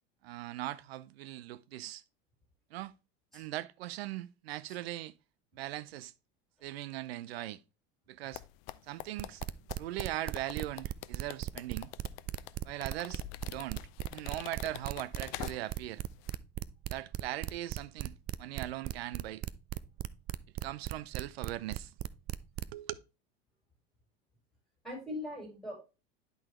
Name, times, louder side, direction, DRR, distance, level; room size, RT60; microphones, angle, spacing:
voice 1, 0.2-2.0 2.7-2.9 3.3-5.1 5.5-6.1 6.6-7.6 8.1-8.4 8.9-9.4 9.8-11.9 12.6-13.8 14.1-16.0 16.9-19.4 20.6-21.9 22.7-22.9, right 15 dB, 75° right, 0.6 m, -40 dB
sound 1, 8.3-15.9 16.2-16.4, left 17 dB, 60° left, 0.6 m, -45 dB
sound 2, 9.2-22.7, right 14 dB, 30° right, 0.4 m, -37 dB
voice 2, 24.8-25.7, left 1 dB, ahead, 4.7 m, -41 dB
11.0 x 4.0 x 3.1 m
hypercardioid pair, 95°, 31 cm